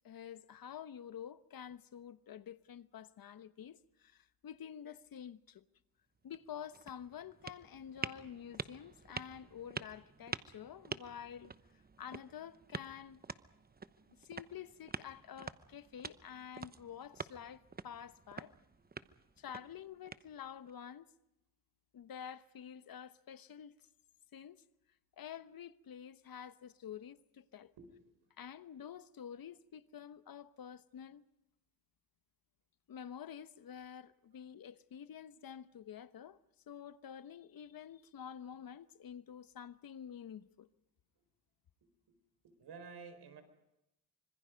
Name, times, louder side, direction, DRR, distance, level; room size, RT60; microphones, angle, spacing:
voice 1, 0.0-5.6 6.2-11.5 12.0-13.2 14.2-18.5 19.4-21.1 21.9-23.7 24.3-24.6 25.2-27.7 28.4-31.2 32.9-36.4 36.7-40.7, left 9 dB, 60° left, 1.1 m, -49 dB
sound 1, 6.2-20.7, right 4 dB, 25° right, 0.9 m, -48 dB
voice 2, 27.8-28.2 34.3-34.4 41.8-42.2 42.4-43.4, right 5 dB, 75° right, 4.9 m, -53 dB
25.5 x 25.5 x 5.2 m
cardioid pair, 105°, 40 cm